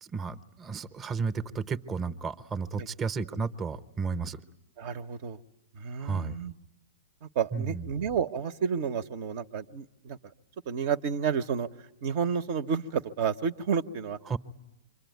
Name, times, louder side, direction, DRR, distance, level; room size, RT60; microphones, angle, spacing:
voice 1, 0.0-4.4 6.0-6.4 7.5-7.9 14.3-14.4, right 5 dB, 20° right, 11 dB, 0.9 m, -33 dB
voice 2, 4.8-5.4 5.7-6.5 7.2-10.2 10.7-11.7 12.0-14.2, right 7 dB, 50° right, 10 dB, 0.9 m, -30 dB
26.5 x 23.5 x 9.3 m, 0.97 s
hypercardioid pair, 115°, 0 cm